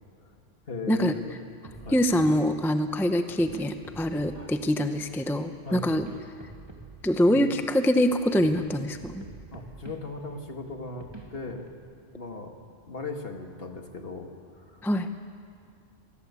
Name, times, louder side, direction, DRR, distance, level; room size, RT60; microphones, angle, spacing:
voice 1, 0.7-1.4 1.8-2.0 4.3-4.5 5.6-5.9 7.3-7.6 9.5-11.7 12.2-12.5 12.9-14.3 14.6-14.8, left 3 dB, 50° left, 3 dB, 2.2 m, -38 dB
sound 1, 1.6-11.7, right 2 dB, 20° right, 2.5 m, -48 dB
voice 2, 1.9-6.1 7.0-9.2 14.8-15.1, equal, ahead, 8 dB, 0.7 m, -24 dB
26.0 x 18.5 x 8.3 m, 2.3 s
omnidirectional pair, 1.2 m